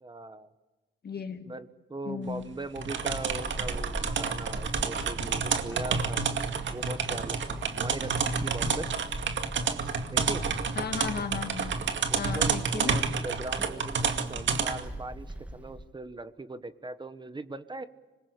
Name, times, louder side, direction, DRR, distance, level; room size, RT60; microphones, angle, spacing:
voice 1, 0.0-0.5 1.5-8.9 10.1-10.4 12.1-17.9, right 2 dB, 25° right, 12 dB, 1.2 m, -40 dB
voice 2, 1.0-1.5 2.0-2.4 10.8-11.7 12.2-13.0, left 6 dB, 55° left, 7 dB, 2.4 m, -35 dB
sound 1, 2.8-14.8, right 5 dB, 70° right, 2.2 m, -30 dB
Walk footsteps / Squeak, 3.3-15.9, right 1 dB, 5° right, 1.7 m, -42 dB
25.5 x 21.5 x 8.4 m, 1.2 s
cardioid pair, 100°, 20 cm